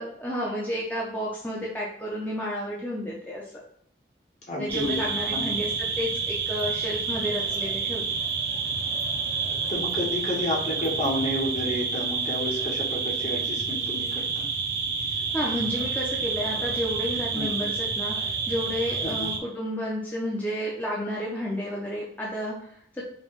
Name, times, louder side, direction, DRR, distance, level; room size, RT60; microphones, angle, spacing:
voice 1, 0.0-3.4 4.6-8.0 15.3-23.0, equal, 10° left, -5 dB, 0.6 m, -31 dB
voice 2, 4.5-5.0 5.3-5.5 9.7-14.5 17.4-17.5 19.0-19.3, left 1 dB, 40° left, -3 dB, 1.1 m, -30 dB
sound 1, 4.7-19.4, right 5 dB, 60° right, 0.6 m, -29 dB
5.1 x 2.3 x 3.1 m, 0.65 s
head